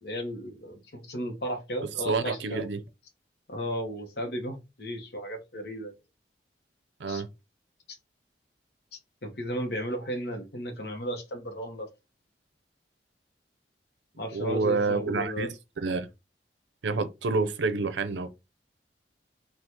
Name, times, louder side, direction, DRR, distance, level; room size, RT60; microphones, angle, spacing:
voice 1, 0.0-2.7 3.5-5.9 7.1-7.2 9.2-11.9 14.2-15.5, equal, 65° left, 0.9 m, -34 dB
voice 2, 1.9-2.8 7.0-7.3 14.3-15.5 15.8-16.1 16.8-18.3, right 4 dB, 85° right, 0.5 m, -28 dB
2.9 x 2.4 x 3.5 m
head